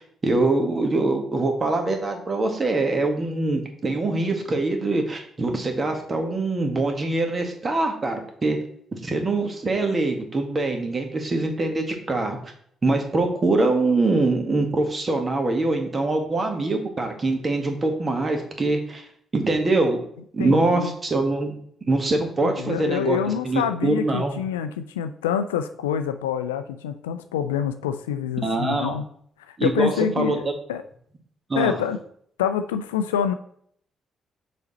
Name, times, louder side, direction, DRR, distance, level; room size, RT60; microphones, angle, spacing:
voice 1, 0.0-8.6 8.9-12.4 12.8-19.0 19.3-20.0 20.3-21.5 21.9-23.2 23.4-24.3 28.4-28.9 29.6-30.4 31.5-31.8, right 2 dB, 35° right, 4 dB, 1.7 m, -23 dB
voice 2, 20.4-20.9 22.4-29.0 29.6-30.8 31.5-32.0 32.4-33.3, left 8 dB, 80° left, 9 dB, 0.4 m, -26 dB
6.8 x 4.3 x 4.2 m, 0.64 s
figure-of-eight pair, 40°, 0 cm